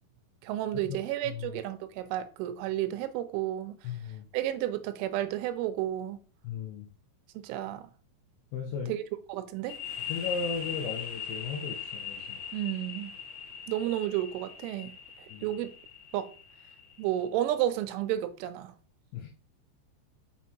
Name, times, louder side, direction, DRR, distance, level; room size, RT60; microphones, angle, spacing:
voice 1, 0.4-3.9 4.3-6.2 7.4-7.9 8.9-9.0 9.3-9.8 12.5-13.1 13.7-14.9 15.2-15.7 16.1-16.3 17.0-18.8, right 12 dB, 90° right, 3.1 m, -32 dB
voice 2, 3.8-4.3 6.4-6.9 8.5-9.0 10.1-12.4 15.3-15.5 19.1-19.3, left 5 dB, 80° left, 2.3 m, -36 dB
sound 1, 9.7-17.2, left 8 dB, 40° left, 2.0 m, -40 dB
6.1 x 5.6 x 2.7 m
omnidirectional pair, 5.4 m